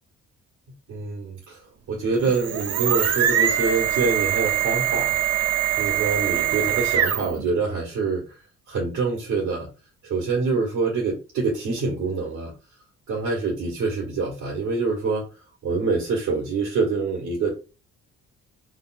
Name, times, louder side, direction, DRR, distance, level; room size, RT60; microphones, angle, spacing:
voice 1, 0.9-1.6 1.9-5.2 5.8-8.4 8.7-9.7 10.0-12.5 13.1-15.3 15.6-17.5, right 4 dB, 85° right, -3 dB, 1.8 m, -25 dB
sound 1, 2.1-7.4, right 10 dB, 55° right, 0.6 m, -23 dB
3.7 x 2.4 x 4.2 m, 0.31 s
cardioid pair, 90°, 30 cm